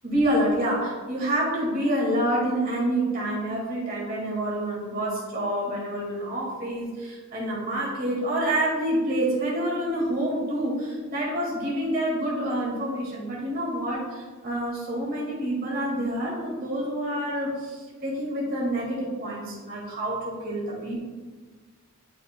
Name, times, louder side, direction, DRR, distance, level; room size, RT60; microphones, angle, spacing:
voice 1, 0.0-21.0, right 1 dB, 50° right, -5 dB, 1.9 m, -27 dB
10.5 x 5.2 x 2.2 m, 1.4 s
head